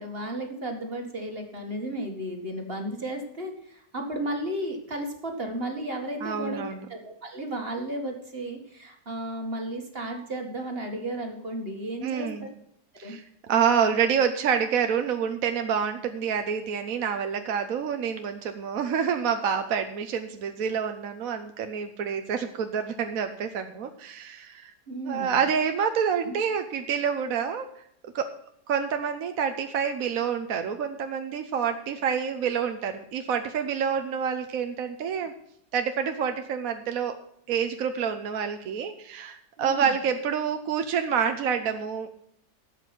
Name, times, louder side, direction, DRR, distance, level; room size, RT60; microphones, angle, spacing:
voice 1, 0.0-6.6 6.9-12.5 13.0-13.2 24.9-25.4 26.2-26.4 39.6-39.9, right 1 dB, 35° right, 3 dB, 2.1 m, -34 dB
voice 2, 6.2-6.8 12.0-12.5 13.0-24.7 25.0-27.7 28.1-28.3 28.7-35.3 35.7-37.1 37.5-42.1, right 7 dB, 60° right, 7 dB, 1.1 m, -27 dB
12.5 x 8.2 x 6.0 m, 0.73 s
omnidirectional pair, 1.9 m